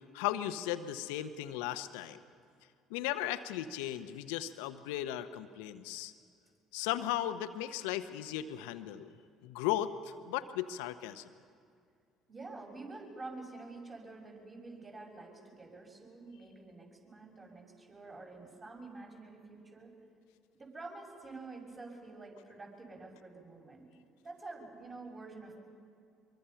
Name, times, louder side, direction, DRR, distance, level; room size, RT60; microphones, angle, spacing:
voice 1, 0.1-2.2 2.9-6.1 6.7-9.1 9.4-11.3, left 12 dB, 75° left, 11 dB, 0.9 m, -36 dB
voice 2, 12.3-19.9 20.5-23.9 24.2-25.6, right 3 dB, 30° right, -1 dB, 6.9 m, -48 dB
24.0 x 23.5 x 5.8 m, 2.3 s
hypercardioid pair, 55°, 0 cm